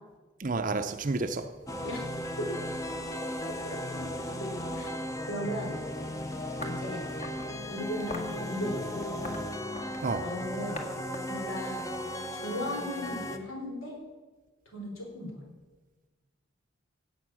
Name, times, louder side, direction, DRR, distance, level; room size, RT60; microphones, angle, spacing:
voice 1, 0.4-1.5 10.0-10.2, right 3 dB, 40° right, 7 dB, 0.6 m, -30 dB
sound 1, 1.7-13.4, left 1 dB, 15° left, 0.8 m, -36 dB
voice 2, 1.8-2.1 2.4-2.7 3.1-4.0 4.4-5.8 6.6-7.1 7.7-9.4 10.2-10.8 11.3-11.9 12.3-14.0 14.7-15.4, left 1 dB, 85° left, 0 dB, 4.2 m, -37 dB
sound 2, 6.6-7.5 8.1-8.4 9.0-10.1 10.8-10.9 11.1-12.6, left 3 dB, 35° left, 1.8 m, -42 dB
17.0 x 7.9 x 6.2 m, 1.3 s
head